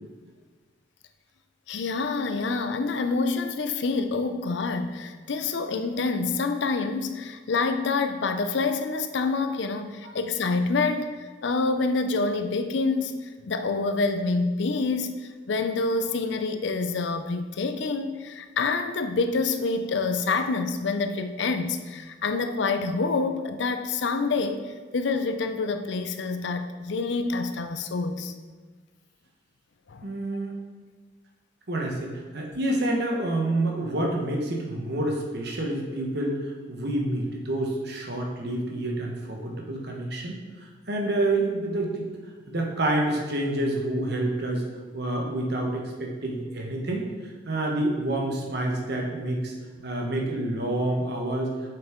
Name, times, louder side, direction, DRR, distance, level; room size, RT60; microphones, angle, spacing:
voice 1, 1.7-28.3 29.9-30.1, left 3 dB, 65° left, 8 dB, 0.5 m, -27 dB
voice 2, 30.0-30.6 31.7-42.1 42.5-44.6 44.9-49.5 49.8-51.5, right 1 dB, 55° right, 0 dB, 1.2 m, -28 dB
7.0 x 5.8 x 3.7 m, 1.4 s
head